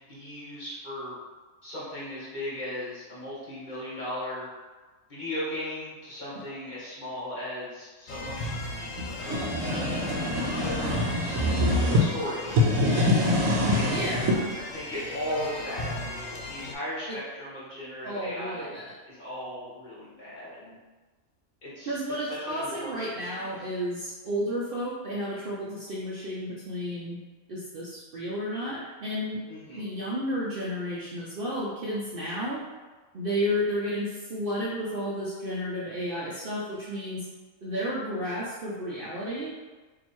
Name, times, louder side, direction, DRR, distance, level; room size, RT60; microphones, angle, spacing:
voice 1, 0.1-1.1 1.6-4.5 5.1-8.5 9.2-10.1 10.5-11.4 11.7-12.6 13.7-14.1 14.6-16.0 16.2-18.7 19.1-20.8 21.6-22.0 22.2-23.6 29.5-29.8, left 1 dB, 35° left, -9 dB, 1.4 m, -37 dB
sound 1, 8.1-16.8, left 2 dB, 75° left, 1.0 m, -36 dB
sound 2, 9.0-12.0 12.5-14.4, left 1 dB, 75° right, 1.0 m, -24 dB
voice 2, 13.9-14.4 17.1-17.2 18.0-18.9 21.9-27.2 27.5-29.4 29.7-32.6 33.1-37.2 37.6-39.5, equal, 55° right, -7 dB, 0.7 m, -32 dB
2.9 x 2.7 x 4.3 m, 1.3 s
omnidirectional pair, 1.4 m